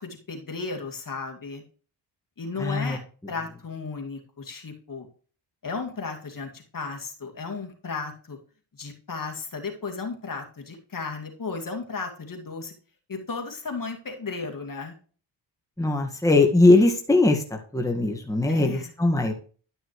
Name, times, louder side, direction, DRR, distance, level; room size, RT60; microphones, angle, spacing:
voice 1, 0.0-1.6 2.4-3.0 3.3-5.1 5.6-8.4 8.8-12.7 13.1-15.0 18.5-18.9, left 4 dB, 45° left, 3 dB, 2.3 m, -34 dB
voice 2, 2.6-3.0 15.8-17.4 17.7-19.3, left 2 dB, 5° left, 2 dB, 1.7 m, -20 dB
11.5 x 6.1 x 3.1 m, 0.40 s
cardioid pair, 60°, 44 cm